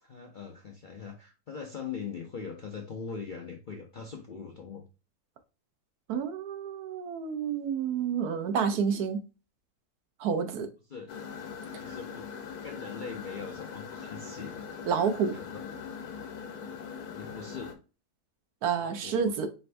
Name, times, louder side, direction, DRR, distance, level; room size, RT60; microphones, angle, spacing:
voice 1, 0.0-4.8 10.9-11.1 11.8-14.7 15.3-15.8 17.1-17.8 18.7-19.4, left 5 dB, 60° left, 0.5 m, -41 dB
voice 2, 6.1-9.2 10.2-10.7 14.9-15.3 18.6-19.5, right 6 dB, 85° right, 1.2 m, -29 dB
sound 1, 11.1-17.8, left 6 dB, 80° left, 1.2 m, -41 dB
5.1 x 2.5 x 3.3 m
omnidirectional pair, 1.6 m